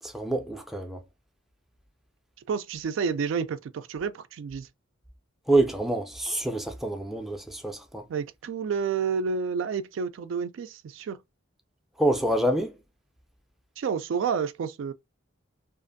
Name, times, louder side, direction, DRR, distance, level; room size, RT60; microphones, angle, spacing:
voice 1, 0.0-1.0 5.5-8.1 12.0-12.8, right 1 dB, ahead, 0.4 m, -26 dB
voice 2, 2.5-4.7 8.1-11.2 13.8-14.9, right 6 dB, 75° right, 0.3 m, -30 dB
2.5 x 2.5 x 2.5 m
head